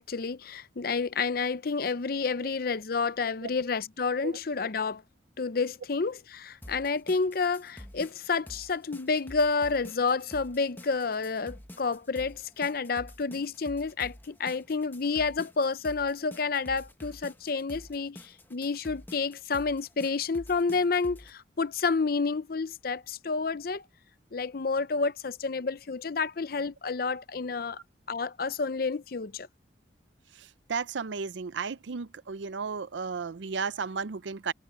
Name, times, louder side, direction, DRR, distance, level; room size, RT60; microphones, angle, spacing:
voice 1, 0.0-5.0 5.4-18.2 18.5-23.8 24.3-27.8 28.1-29.5, left 4 dB, 50° left, 0.6 m, -29 dB
sound 1, 6.6-21.3, left 1 dB, 10° left, 1.0 m, -48 dB
voice 2, 30.3-34.5, right 5 dB, 75° right, 0.5 m, -34 dB
head